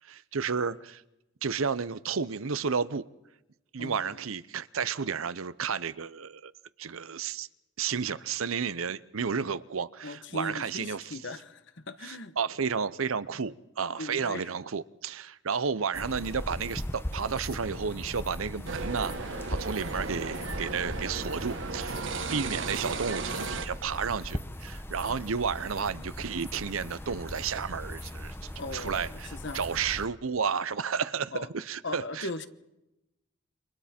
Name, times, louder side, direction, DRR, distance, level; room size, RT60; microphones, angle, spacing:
voice 1, 0.0-1.0 1.4-3.1 3.7-6.5 6.8-7.5 7.8-11.2 12.0-19.1 19.5-28.4 28.7-32.5, right 6 dB, 85° right, 0.7 m, -32 dB
voice 2, 3.8-4.2 10.0-12.3 14.0-14.5 28.6-29.6 31.3-31.5 31.8-32.5, left 2 dB, 60° left, 1.2 m, -39 dB
sound 1, 15.9-30.1, left 1 dB, 10° left, 0.8 m, -39 dB
sound 2, 18.7-23.7, right 4 dB, 65° right, 1.4 m, -35 dB
29.5 x 24.5 x 4.4 m
head